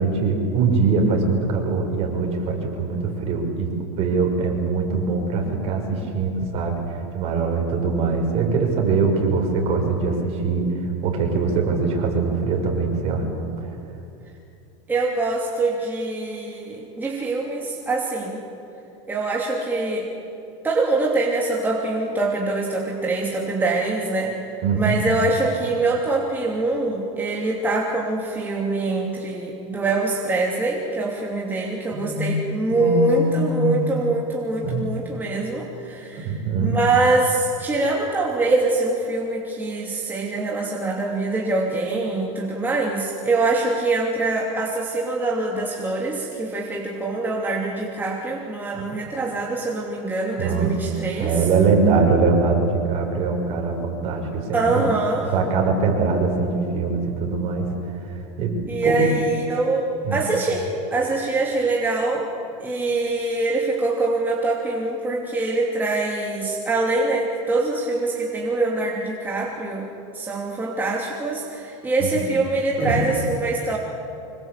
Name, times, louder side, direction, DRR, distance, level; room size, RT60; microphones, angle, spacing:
voice 1, 0.0-10.7 11.0-13.2 13.6-13.7 24.6-25.0 31.9-32.3 32.7-33.7 34.6-34.8 36.1-36.8 50.4-50.7 51.2-54.9 55.2-57.7 58.4-59.1 60.0-60.3 72.0-72.2 72.8-73.0, right 4 dB, 40° right, 2 dB, 5.9 m, -22 dB
voice 2, 14.9-18.4 19.1-20.1 20.6-51.5 54.5-55.3 58.7-62.3 62.6-73.8, right 2 dB, 10° right, -2 dB, 2.8 m, -24 dB
25.5 x 23.0 x 8.2 m, 2.9 s
supercardioid pair, 140°, 15 cm